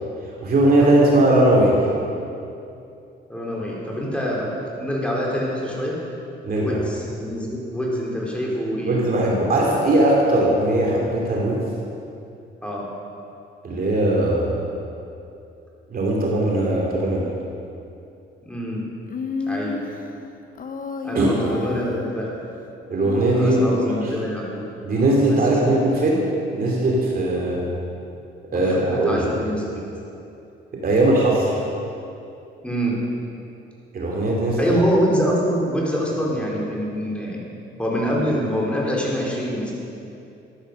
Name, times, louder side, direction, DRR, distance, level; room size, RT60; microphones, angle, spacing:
voice 1, 0.4-1.9 6.4-6.8 8.9-11.6 13.6-14.7 15.9-17.3 21.1-21.3 22.9-24.1 24.8-26.2 26.5-27.6 28.5-29.3 30.8-31.6 33.9-34.8, right 1 dB, 50° right, -3 dB, 2.7 m, -19 dB
voice 2, 3.3-6.0 6.5-9.1 12.6-12.9 18.4-18.8 19.5-19.8 21.0-22.3 23.3-24.6 25.3-25.4 25.6-25.8 27.4-27.5 28.5-29.8 32.6-33.0 34.6-37.4 37.8-39.7, equal, 5° left, -4 dB, 4.1 m, -25 dB
Human voice, 19.1-20.0 20.6-22.1 23.0-24.3, left 5 dB, 45° left, 1.1 m, -31 dB
14.0 x 10.5 x 6.5 m, 2.7 s
cardioid pair, 90°, 20 cm